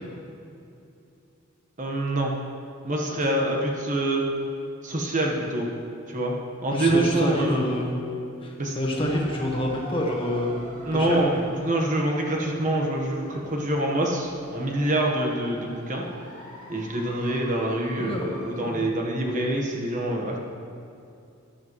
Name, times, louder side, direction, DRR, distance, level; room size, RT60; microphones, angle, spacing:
voice 1, 1.8-2.3 2.8-4.3 4.8-5.7 6.1-6.3 6.6-7.7 8.6-8.8 10.8-16.1 16.7-20.4, right 1 dB, 35° right, -1 dB, 1.2 m, -25 dB
voice 2, 6.7-8.0 8.4-11.2 18.0-18.3 18.7-18.9, left 1 dB, 25° left, -1 dB, 1.5 m, -27 dB
sound 1, 8.9-18.6, right 1 dB, 80° right, 2.8 m, -44 dB
14.0 x 11.0 x 3.1 m, 2.6 s
head